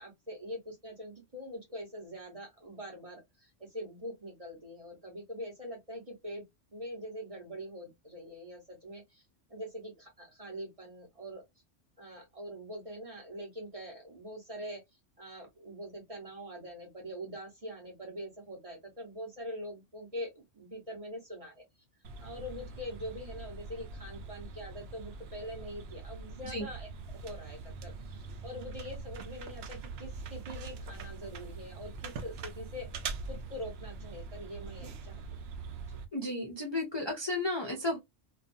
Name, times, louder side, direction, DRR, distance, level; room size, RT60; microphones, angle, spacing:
voice 1, 0.0-6.4 6.7-9.2 9.5-11.4 12.0-14.8 15.2-21.6 22.2-33.0 33.3-35.4 35.9-36.0, equal, 30° right, 0.9 m, -44 dB
sound 1, 22.0-36.1, right 4 dB, 65° right, 0.7 m, -43 dB
voice 2, 36.1-38.0, left 2 dB, 35° left, 0.5 m, -33 dB
2.5 x 2.3 x 2.5 m
omnidirectional pair, 1.3 m